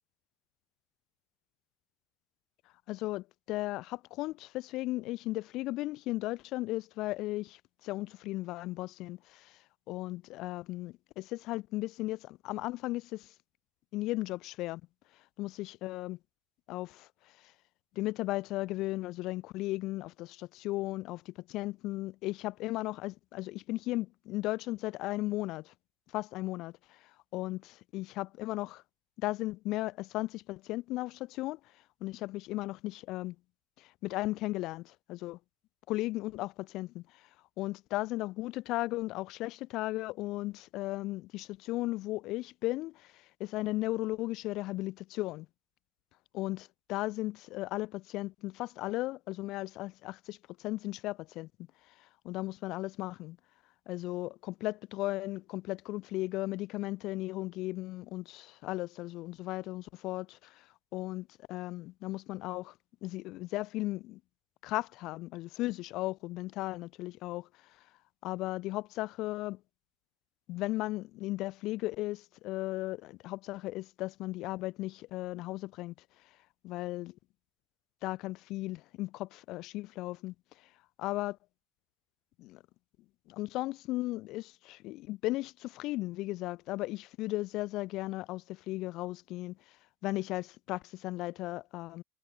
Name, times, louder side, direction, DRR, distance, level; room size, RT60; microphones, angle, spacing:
voice 1, 2.9-9.6 9.9-13.3 13.9-14.8 15.4-16.2 16.7-17.1 17.4-17.5 17.9-25.7 26.1-28.8 29.2-31.6 32.0-33.4 33.8-35.4 35.9-37.3 37.6-45.5 46.3-51.5 52.0-53.4 53.9-60.7 60.9-62.7 63.0-64.2 64.6-67.5 68.2-69.6 70.5-75.9 76.6-77.2 78.0-80.3 81.0-81.4 82.4-82.6 83.3-89.8 90.0-92.0, left 18 dB, 60° left, 0.9 m, -36 dB
hypercardioid pair, 70°, 0 cm